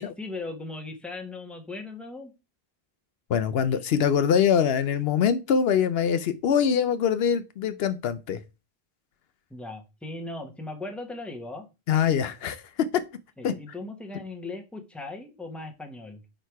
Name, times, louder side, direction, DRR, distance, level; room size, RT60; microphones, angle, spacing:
voice 1, 0.0-2.3 9.5-11.7 13.4-16.2, left 2 dB, ahead, 1.0 m, -38 dB
voice 2, 3.3-8.4 11.9-12.9 13.4-13.6, left 7 dB, 75° left, 0.8 m, -23 dB
5.1 x 4.5 x 4.6 m
omnidirectional pair, 1.0 m